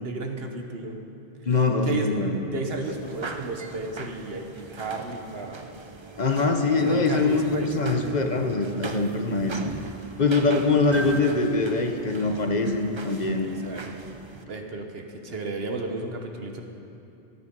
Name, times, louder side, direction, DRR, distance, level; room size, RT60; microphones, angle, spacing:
voice 1, 0.0-1.0 1.8-2.2 2.5-4.5 4.7-5.6 6.7-7.7 11.2-11.3 13.4-14.1 14.5-16.6, right 3 dB, 70° right, 3 dB, 1.4 m, -33 dB
voice 2, 1.5-2.4 6.2-9.5 10.2-13.5, left 3 dB, 45° left, 4 dB, 1.0 m, -23 dB
sound 1, 2.8-14.4, right 3 dB, 30° right, 0.6 m, -39 dB
18.0 x 9.4 x 5.3 m, 2.8 s
omnidirectional pair, 1.1 m